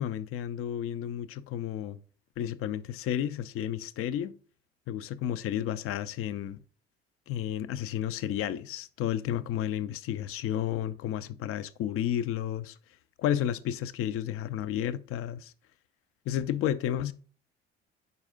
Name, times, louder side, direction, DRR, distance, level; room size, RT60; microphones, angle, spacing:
voice 1, 0.0-2.0 2.4-4.3 4.9-6.6 7.3-12.8 13.2-15.5 16.3-17.1, left 11 dB, 45° left, 0.5 m, -32 dB
5.5 x 4.8 x 3.6 m
hypercardioid pair, 55°, 30 cm